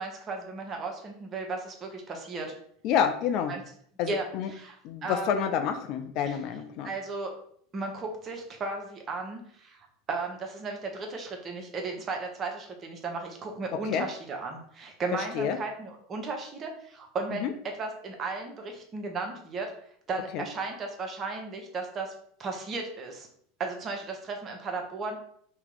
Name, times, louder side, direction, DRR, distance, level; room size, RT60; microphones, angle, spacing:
voice 1, 0.0-2.5 3.5-3.6 4.1-5.5 6.3-6.4 6.8-7.3 7.7-17.5 17.8-19.7 20.1-22.1 22.4-23.3 23.6-25.2, right 3 dB, 30° right, 2 dB, 0.9 m, -35 dB
voice 2, 2.8-3.5 4.0-4.5 4.8-6.9 13.9-14.1 15.3-15.6 17.4-17.5 20.3-20.5, left 8 dB, 50° left, 7 dB, 0.4 m, -28 dB
2.9 x 2.9 x 3.8 m, 0.63 s
hypercardioid pair, 80°, 0 cm